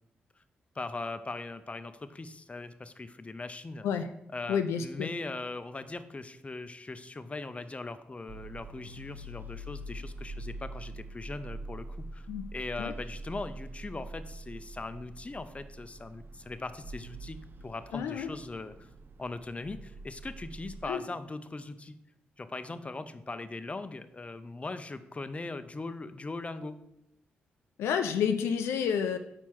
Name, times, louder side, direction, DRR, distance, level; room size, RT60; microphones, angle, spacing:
voice 1, 0.8-3.9 4.3-11.9 12.1-17.4 17.6-18.9 19.2-22.0 22.4-26.8, left 3 dB, 30° left, 11 dB, 0.5 m, -40 dB
voice 2, 4.5-5.1 12.3-12.5 12.8-12.9 17.9-18.3 20.8-21.0 27.8-29.2, left 7 dB, 80° left, 7 dB, 0.4 m, -29 dB
sound 1, 8.3-20.9, right 1 dB, 50° right, 0.4 m, -44 dB
4.6 x 4.3 x 5.9 m, 0.81 s
supercardioid pair, 45°, 4 cm